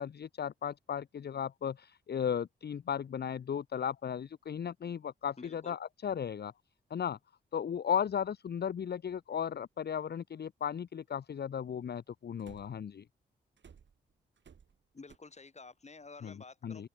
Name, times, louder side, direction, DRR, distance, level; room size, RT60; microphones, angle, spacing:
voice 1, 0.0-6.5 6.9-7.2 7.5-13.0 16.2-16.4 16.6-16.9, left 8 dB, 50° left, 0.8 m, -35 dB
voice 2, 5.4-5.7 14.9-16.9, left 4 dB, 35° left, 1.9 m, -51 dB
sound 1, 12.4-12.9 13.6-15.2, right 7 dB, 65° right, 5.0 m, -57 dB
supercardioid pair, 40°, 21 cm